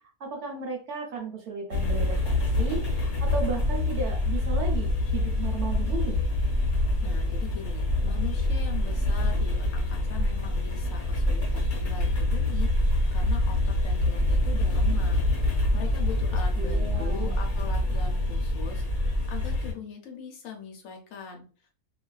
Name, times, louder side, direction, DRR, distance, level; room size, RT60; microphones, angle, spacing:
voice 1, 0.2-6.2 16.3-17.4, right 4 dB, 65° right, 1 dB, 0.8 m, -35 dB
sound 1, 1.7-19.7, left 1 dB, 50° left, 1.0 m, -26 dB
voice 2, 7.0-21.7, left 6 dB, 75° left, 2 dB, 1.0 m, -41 dB
2.4 x 2.3 x 2.3 m, 0.38 s
omnidirectional pair, 1.5 m